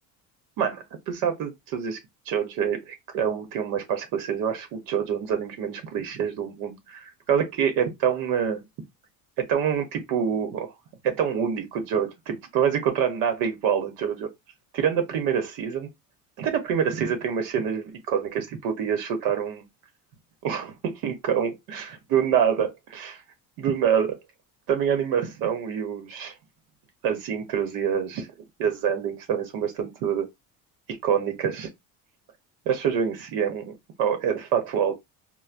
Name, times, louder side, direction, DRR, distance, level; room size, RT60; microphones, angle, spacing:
voice 1, 0.6-2.0 2.3-8.6 9.4-10.7 11.0-14.3 14.7-15.9 16.4-19.6 20.4-23.2 23.6-24.2 24.7-26.4 27.0-28.3 28.6-30.3 31.0-31.7 32.7-34.9, right 8 dB, 70° right, 0.8 m, -26 dB
4.4 x 2.1 x 2.4 m
cardioid pair, 165°, 36 cm